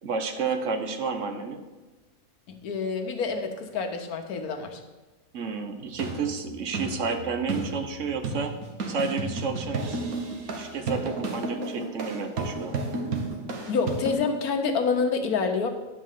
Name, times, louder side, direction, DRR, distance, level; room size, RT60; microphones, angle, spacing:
voice 1, 0.0-1.6 5.3-8.6 8.9-10.0 10.6-12.8, right 5 dB, 60° right, 7 dB, 1.1 m, -31 dB
voice 2, 2.5-4.8 13.7-15.7, left 5 dB, 90° left, 6 dB, 1.5 m, -27 dB
sound 1, 5.8-14.1, right 3 dB, 75° right, 1.7 m, -32 dB
11.0 x 4.3 x 7.4 m, 1.2 s
omnidirectional pair, 1.5 m